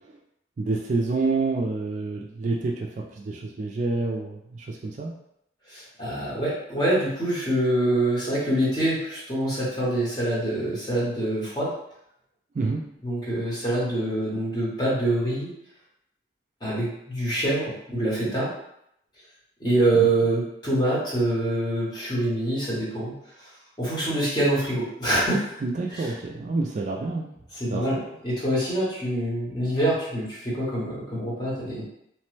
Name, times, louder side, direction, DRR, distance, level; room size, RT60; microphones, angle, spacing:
voice 1, 0.6-2.9 3.2-5.1 12.5-12.8 19.9-20.1 25.6-27.3 27.7-28.0, right 3 dB, 40° right, -1 dB, 0.3 m, -28 dB
voice 2, 5.7-11.7 13.0-15.5 16.6-18.5 19.6-23.1 23.8-25.4 25.9-26.0 27.5-31.8, right 1 dB, 25° left, -7 dB, 1.0 m, -25 dB
3.0 x 2.1 x 3.1 m, 0.76 s
head